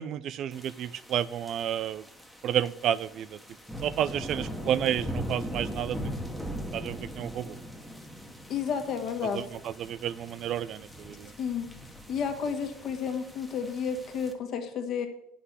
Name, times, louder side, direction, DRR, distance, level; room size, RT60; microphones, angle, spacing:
voice 1, 0.0-2.0 2.4-3.4 3.8-6.0 6.7-7.6 9.3-11.3, right 10 dB, 45° right, 17 dB, 0.4 m, -31 dB
sound 1, 0.5-14.3, equal, ahead, 1.2 m, -40 dB
voice 2, 8.5-9.4 11.4-11.7 12.1-15.1, left 6 dB, 45° left, 5 dB, 1.5 m, -31 dB
8.0 x 6.1 x 8.0 m, 0.78 s
cardioid pair, 135°, 0 cm